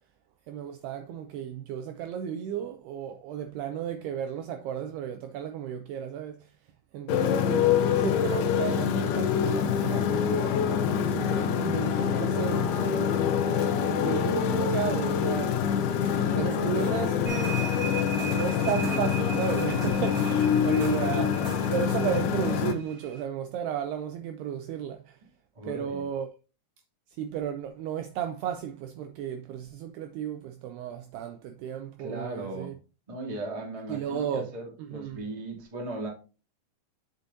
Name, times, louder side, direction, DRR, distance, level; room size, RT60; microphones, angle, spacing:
voice 1, 0.5-6.5 6.9-13.2 14.0-15.6 16.4-17.6 18.3-25.2 25.7-26.3 27.2-32.7 33.9-34.5 34.8-35.2, right 9 dB, 80° right, 2.4 m, -34 dB
Motorcycle, 7.1-22.7, left 8 dB, 80° left, 2.3 m, -26 dB
voice 2, 13.9-14.4 25.5-26.1 32.0-32.8 33.1-36.1, right 2 dB, 20° right, 1.0 m, -37 dB
sound 1, 15.7-22.2, right 2 dB, 55° right, 1.3 m, -45 dB
sound 2, 17.2-23.2, right 7 dB, 35° right, 1.6 m, -40 dB
8.0 x 6.8 x 2.7 m
omnidirectional pair, 5.3 m